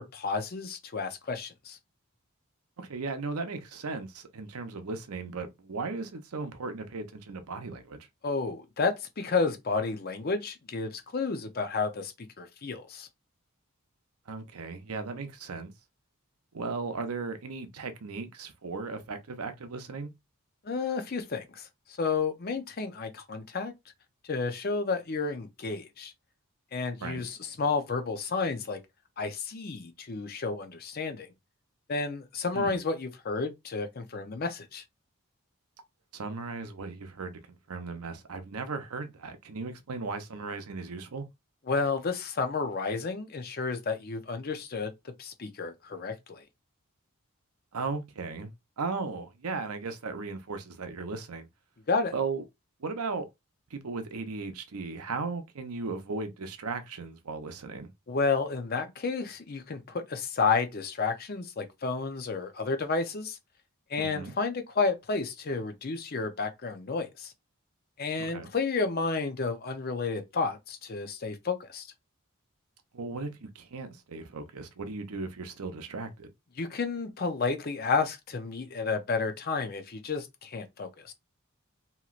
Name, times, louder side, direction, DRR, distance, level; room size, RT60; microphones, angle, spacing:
voice 1, 0.0-1.8 8.2-13.1 20.6-21.7 22.0-23.7 24.2-26.1 26.7-28.8 29.2-31.3 31.9-34.8 41.7-46.4 51.9-52.1 58.1-63.4 63.9-67.3 68.0-71.9 76.6-81.1, left 4 dB, 45° left, 0.6 m, -31 dB
voice 2, 2.8-8.1 14.3-15.7 16.5-20.1 27.0-27.2 32.5-32.8 36.1-37.4 37.7-41.3 47.7-48.5 48.8-51.5 52.1-52.4 52.8-53.3 53.7-57.9 64.0-64.3 68.2-68.5 72.9-76.3, right 4 dB, 90° right, 0.7 m, -36 dB
3.0 x 2.9 x 2.4 m
head